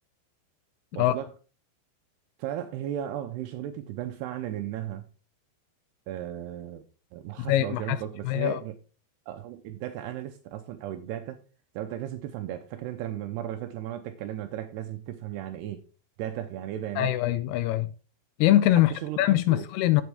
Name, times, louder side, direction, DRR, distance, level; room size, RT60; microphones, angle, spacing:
voice 1, 0.9-1.3 2.4-5.0 6.1-6.8 7.1-8.7 9.3-11.4 11.8-15.8 16.2-17.1 18.7-19.2 19.5-19.6, right 12 dB, 80° right, 2.6 m, -35 dB
voice 2, 7.4-8.0 8.2-8.6 17.0-17.9 18.4-20.0, left 14 dB, 85° left, 2.3 m, -23 dB
8.9 x 8.3 x 3.5 m
omnidirectional pair, 5.0 m